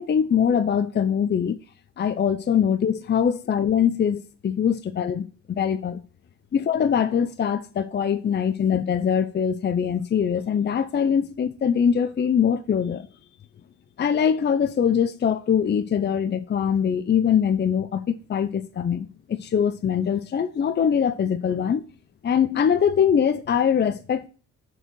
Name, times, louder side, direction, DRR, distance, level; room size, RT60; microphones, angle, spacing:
voice 1, 0.0-1.6 2.0-6.0 6.5-13.1 14.0-21.8 22.2-24.3, left 8 dB, 35° left, 0.6 m, -23 dB
6.4 x 4.7 x 6.3 m
cardioid pair, 90°, 30 cm